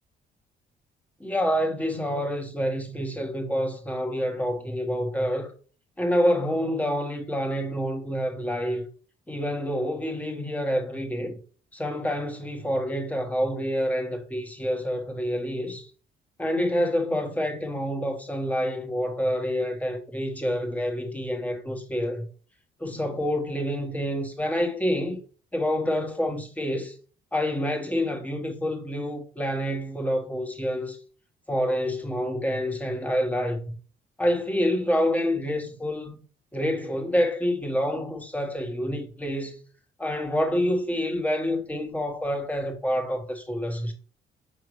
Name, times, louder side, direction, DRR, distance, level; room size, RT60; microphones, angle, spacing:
voice 1, 1.2-5.5 6.0-8.8 9.3-11.4 11.7-15.9 16.4-22.2 22.8-25.2 25.5-26.9 27.3-31.0 31.5-33.6 34.2-36.2 36.5-39.6 40.0-43.9, equal, 5° left, 1.6 m, -27 dB
5.6 x 5.2 x 3.2 m
cardioid pair, 90°, 20 cm